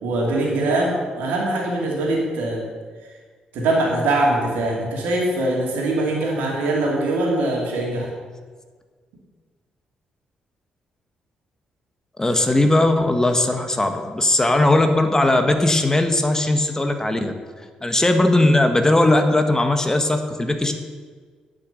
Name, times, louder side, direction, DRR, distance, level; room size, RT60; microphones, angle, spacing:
voice 1, 0.0-2.6 3.5-8.1, right 2 dB, 70° right, -2 dB, 2.8 m, -22 dB
voice 2, 12.2-17.3 17.8-20.7, left 2 dB, 20° left, 6 dB, 1.4 m, -18 dB
9.9 x 6.5 x 6.8 m, 1.5 s
hypercardioid pair, 45°, 3 cm